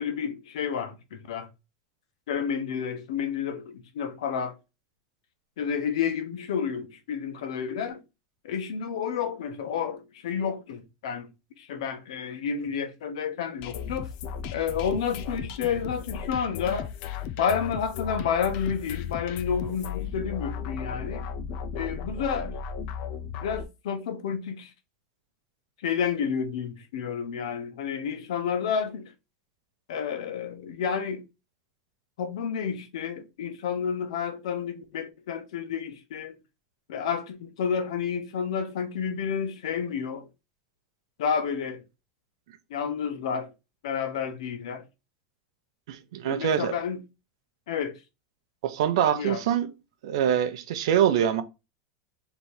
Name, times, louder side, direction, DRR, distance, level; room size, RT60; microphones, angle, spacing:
voice 1, 0.0-1.5 2.3-4.5 5.6-8.0 8.4-11.3 11.6-14.1 14.5-16.9 17.4-21.3 21.7-22.6 23.4-24.7 25.8-29.1 29.9-31.2 32.2-36.4 36.9-40.3 41.2-41.8 42.7-43.5 43.8-44.8 46.2-47.0 47.7-47.9 49.1-49.4, left 7 dB, 85° left, 1.1 m, -30 dB
sound 1, 13.6-23.7, left 7 dB, 40° left, 0.4 m, -35 dB
voice 2, 45.9-46.7 48.6-49.7 50.0-51.4, right 9 dB, 65° right, 0.8 m, -24 dB
3.5 x 3.0 x 4.4 m
supercardioid pair, 175°, 3 cm